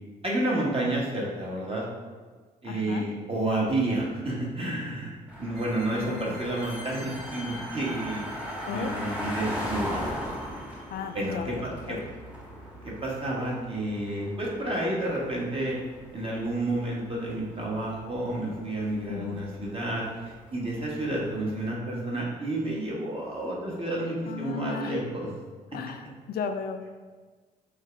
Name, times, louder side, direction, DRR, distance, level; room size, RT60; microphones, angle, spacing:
voice 1, 0.2-1.8 2.6-8.3 8.7-10.1 11.1-12.0 12.8-15.8 16.1-20.0 20.5-25.3, right 1 dB, 30° right, -4 dB, 1.5 m, -30 dB
voice 2, 2.6-3.1 5.9-6.4 8.7-9.0 10.9-11.6 11.9-12.0 19.1-19.4 24.3-25.0 25.7-26.9, left 7 dB, 50° left, 7 dB, 0.4 m, -35 dB
sound 1, 5.3-21.7, equal, 5° right, 1.3 m, -39 dB
sound 2, 5.5-13.0, right 1 dB, 85° right, 0.5 m, -47 dB
6.3 x 2.2 x 3.4 m, 1.4 s
figure-of-eight pair, 45°, 20 cm